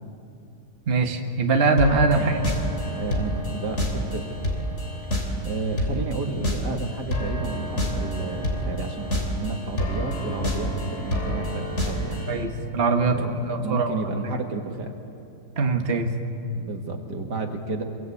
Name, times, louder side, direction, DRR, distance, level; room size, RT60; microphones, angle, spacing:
voice 1, 0.9-2.5 12.3-13.2 13.5-13.9 15.6-16.1, right 3 dB, 35° right, 4 dB, 1.6 m, -22 dB
sound 1, 1.8-12.4, equal, 40° left, 3.6 m, -28 dB
voice 2, 2.1-2.4 2.9-4.2 5.4-12.2 13.1-15.0 16.5-17.8, right 3 dB, 75° right, 3 dB, 2.6 m, -31 dB
27.0 x 22.5 x 8.5 m, 2.7 s
omnidirectional pair, 1.8 m